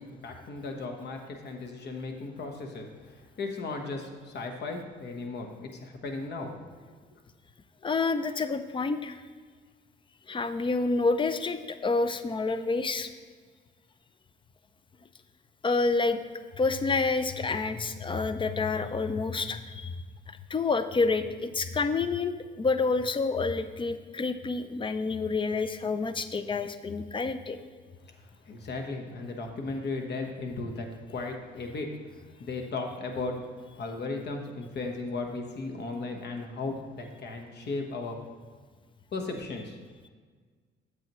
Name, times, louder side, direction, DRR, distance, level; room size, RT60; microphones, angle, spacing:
voice 1, 0.0-6.5 28.2-31.9 32.4-33.4 33.7-38.2 39.1-39.8, left 3 dB, 60° left, 3 dB, 1.2 m, -36 dB
voice 2, 7.8-9.2 10.3-13.1 15.6-16.2 16.6-19.9 20.5-27.6, left 4 dB, 25° left, 11 dB, 0.5 m, -28 dB
8.3 x 7.9 x 3.1 m, 1.5 s
cardioid pair, 90°, 20 cm